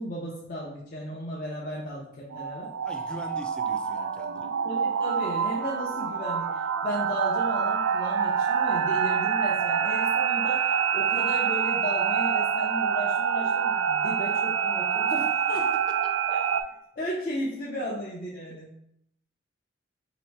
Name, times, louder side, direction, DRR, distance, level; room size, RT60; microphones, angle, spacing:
voice 1, 0.0-2.7 4.6-15.7 16.3-16.4 17.0-18.8, equal, 45° left, -5 dB, 0.7 m, -35 dB
sound 1, 2.3-16.6, right 7 dB, 90° right, 0.3 m, -26 dB
voice 2, 2.8-4.5, equal, 5° left, 5 dB, 0.4 m, -42 dB
3.1 x 3.0 x 4.5 m, 0.72 s
head